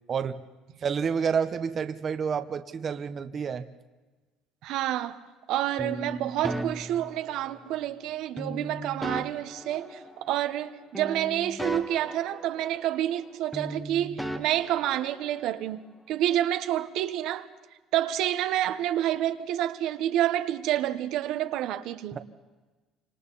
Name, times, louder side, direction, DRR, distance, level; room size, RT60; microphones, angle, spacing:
voice 1, 0.1-0.4 0.8-3.7 22.1-22.2, right 6 dB, 35° right, 1.0 m, -29 dB
voice 2, 4.6-5.2 5.5-17.5 17.9-22.2, right 12 dB, 70° right, 1.3 m, -28 dB
sound 1, 5.8-7.8 8.4-10.7 10.9-13.3 13.5-15.6, right 1 dB, ahead, 1.4 m, -37 dB
29.0 x 26.0 x 4.2 m
cardioid pair, 130°, 0 cm